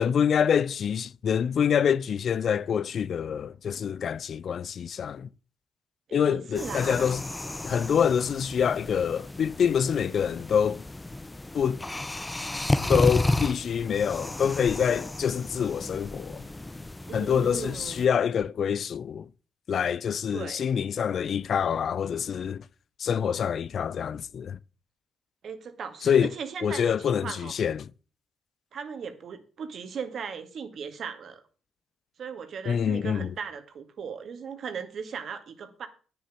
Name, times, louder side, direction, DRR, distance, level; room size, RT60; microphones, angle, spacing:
voice 1, 0.0-5.3 6.1-7.3 7.6-10.8 11.5-11.8 12.9-16.5 17.1-19.3 19.7-22.6 23.0-24.6 26.0-26.3 26.6-27.9 32.7-33.3, left 7 dB, 65° left, 0.4 m, -26 dB
voice 2, 6.1-7.1 17.1-18.0 20.3-20.6 25.4-27.5 28.7-31.4 32.2-35.9, right 6 dB, 65° right, 2.0 m, -37 dB
sound 1, 6.5-18.1, left 2 dB, 20° left, 0.8 m, -32 dB
9.4 x 7.2 x 6.2 m
supercardioid pair, 60°, 0 cm